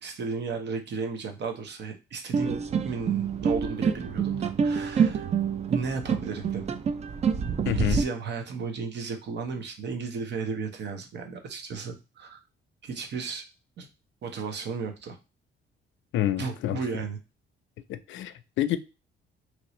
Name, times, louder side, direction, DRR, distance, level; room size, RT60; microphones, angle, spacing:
voice 1, 0.0-5.3 5.7-6.8 7.6-12.4 12.8-13.4 13.8-13.9 14.2-15.2 16.4-17.2, right 5 dB, 60° right, 5 dB, 0.9 m, -34 dB
sound 1, 2.3-8.0, right 6 dB, 35° right, 0.4 m, -27 dB
voice 2, 7.7-8.0 16.1-16.8 17.9-18.8, left 12 dB, 75° left, 13 dB, 0.4 m, -28 dB
3.0 x 2.6 x 3.0 m, 0.28 s
cardioid pair, 90°, 20 cm